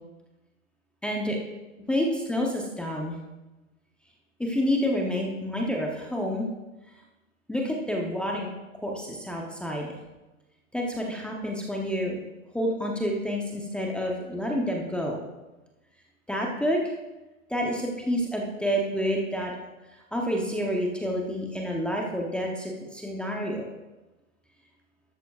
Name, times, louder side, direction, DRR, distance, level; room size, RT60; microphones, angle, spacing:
voice 1, 1.0-1.4 1.9-3.2 4.4-6.5 7.5-8.5 8.8-9.9 10.7-12.2 12.5-15.2 16.3-16.8 17.5-19.5 20.1-23.6, equal, ahead, -1 dB, 0.7 m, -28 dB
12.5 x 12.5 x 2.4 m, 1.1 s
hypercardioid pair, 130°, 42 cm